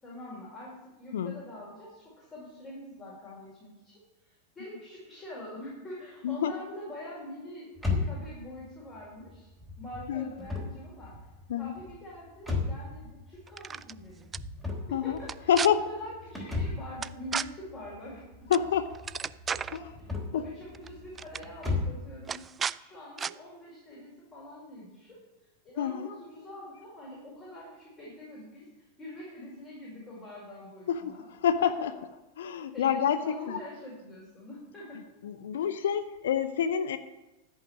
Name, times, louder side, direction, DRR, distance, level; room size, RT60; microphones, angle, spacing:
voice 1, 0.0-9.5 9.8-11.1 11.6-14.3 14.9-18.6 19.2-22.4 22.7-25.2 25.6-31.3 31.6-31.7 32.7-35.0, left 1 dB, 20° left, -6 dB, 5.4 m, -45 dB
sound 1, 7.8-22.1, left 3 dB, 5° left, 3.5 m, -37 dB
sound 2, 13.5-13.9 14.3-14.4 15.2-15.7 17.0-17.5 18.5-18.7 18.9-19.8 20.7-20.9 21.2-21.4 22.3-22.8 23.2-23.3, right 6 dB, 20° right, 0.3 m, -33 dB
voice 2, 15.5-15.8 18.5-18.8 20.3-20.4 25.8-26.1 30.9-31.2 31.4-31.9 32.4-33.6 35.2-37.0, left 8 dB, 60° left, 12 dB, 0.6 m, -27 dB
14.0 x 5.6 x 9.2 m, 1.1 s
figure-of-eight pair, 90°, 0 cm